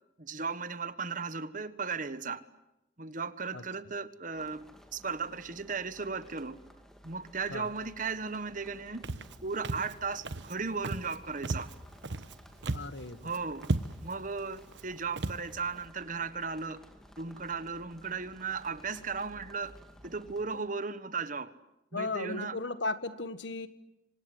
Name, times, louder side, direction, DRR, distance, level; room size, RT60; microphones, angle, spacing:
voice 1, 0.2-2.4 3.0-4.6 4.9-6.6 7.0-9.1 9.4-11.7 13.2-13.7 14.0-16.8 17.2-19.8 20.0-21.5 21.9-22.6, right 4 dB, 45° right, 13 dB, 1.4 m, -36 dB
sound 1, 4.3-20.4, equal, 5° left, 2.7 m, -56 dB
Walk footsteps, 9.0-9.4 9.6-9.9 10.2-10.5 10.8-11.2 11.4-12.3 12.6-13.0 13.3-13.4 13.6-14.2 14.7-14.8 15.2-15.4, right 2 dB, 70° right, 1.1 m, -34 dB
voice 2, 12.7-13.4 20.5-20.6 21.9-23.7, left 3 dB, 75° left, 12 dB, 1.7 m, -36 dB
27.5 x 25.5 x 7.9 m, 0.89 s
head